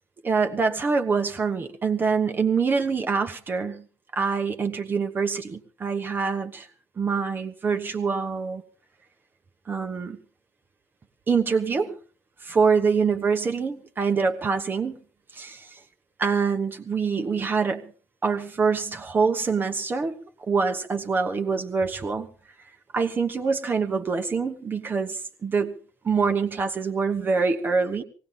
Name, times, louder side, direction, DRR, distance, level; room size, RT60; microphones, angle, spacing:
voice 1, 0.2-3.8 4.1-6.7 7.0-8.6 9.7-10.2 11.3-12.0 12.4-15.0 15.3-15.8 16.2-17.9 18.2-22.3 22.9-25.7 26.0-28.0, right 5 dB, 30° right, 5 dB, 1.1 m, -25 dB
18.5 x 17.5 x 3.7 m, 0.39 s
figure-of-eight pair, 60°, 7 cm